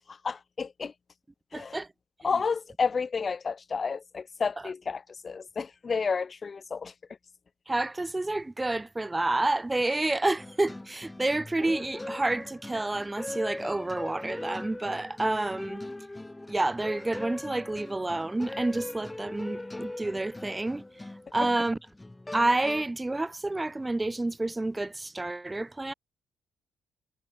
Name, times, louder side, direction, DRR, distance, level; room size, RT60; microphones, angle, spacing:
voice 1, 0.1-0.9 1.5-1.8 2.2-6.9 21.4-21.5, left 5 dB, 30° left, 2.7 m, -31 dB
voice 2, 1.5-1.9 7.7-15.8 16.5-20.8 21.3-21.8 22.3-25.9, right 2 dB, 10° right, 1.6 m, -29 dB
sound 1, 10.4-22.9, left 2 dB, 10° left, 7.0 m, -40 dB
cardioid pair, 140°, 0 cm